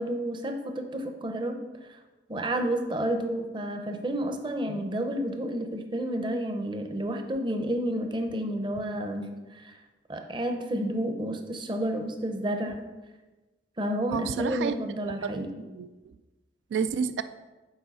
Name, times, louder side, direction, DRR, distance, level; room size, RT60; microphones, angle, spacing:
voice 1, 0.0-1.6 2.3-9.3 9.5-9.8 10.1-12.8 13.8-15.5, right 1 dB, 25° right, 5 dB, 0.7 m, -30 dB
voice 2, 14.1-14.8 15.2-15.9 16.7-17.2, right 6 dB, 80° right, 11 dB, 0.3 m, -30 dB
7.2 x 4.7 x 5.5 m, 1.2 s
head